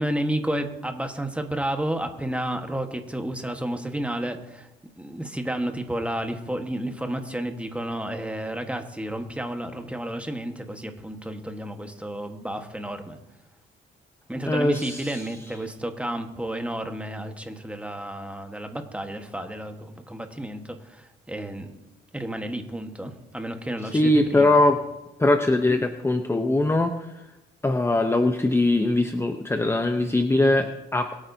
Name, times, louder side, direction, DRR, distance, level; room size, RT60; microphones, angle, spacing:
voice 1, 0.0-4.7 5.0-13.2 14.3-21.7 22.1-24.6, right 1 dB, 5° right, 5 dB, 1.4 m, -31 dB
voice 2, 14.5-15.2 23.8-24.8 25.2-27.1 27.6-31.1, left 2 dB, 10° left, 6 dB, 0.8 m, -21 dB
22.5 x 8.9 x 2.8 m, 1.0 s
cardioid pair, 90°, 20 cm